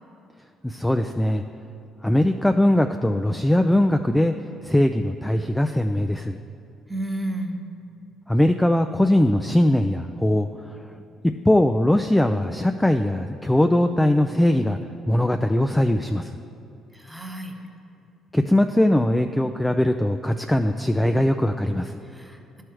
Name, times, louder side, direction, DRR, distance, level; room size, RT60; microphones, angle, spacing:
voice 1, 0.6-1.4 2.0-4.3 4.6-6.4 8.3-10.8 11.5-14.8 15.1-16.3 18.3-22.0, left 1 dB, 10° left, 6 dB, 0.3 m, -20 dB
voice 2, 6.9-7.6 16.9-17.5 22.0-22.6, right 1 dB, 5° right, 3 dB, 0.9 m, -32 dB
12.0 x 4.8 x 3.1 m, 2.7 s
hypercardioid pair, 60°, 0 cm